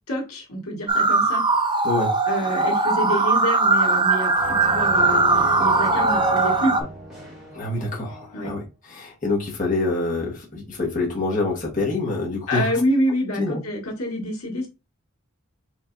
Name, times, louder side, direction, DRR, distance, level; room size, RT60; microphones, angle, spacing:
voice 1, 0.1-1.4 2.3-6.9 8.3-8.5 12.5-14.7, equal, 85° left, 1.8 m, -27 dB
sound 1, 0.9-6.8, right 3 dB, 20° right, 0.7 m, -20 dB
sound 2, 4.4-8.5, left 1 dB, 5° right, 2.7 m, -35 dB
voice 2, 7.5-12.7 13.4-13.6, left 2 dB, 35° left, 1.3 m, -26 dB
4.7 x 4.1 x 2.6 m
head